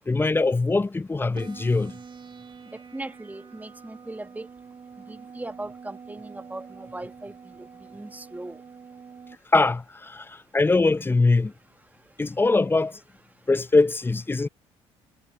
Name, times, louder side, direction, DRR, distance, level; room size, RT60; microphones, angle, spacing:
voice 1, 0.1-2.0 9.5-11.5 12.2-13.0 13.5-14.5, left 3 dB, 15° left, 0.5 m, -22 dB
sound 1, 1.3-9.4, right 6 dB, 35° right, 2.9 m, -46 dB
voice 2, 2.9-4.5 5.1-8.6, right 2 dB, 10° right, 1.6 m, -39 dB
hypercardioid pair, 55°, 14 cm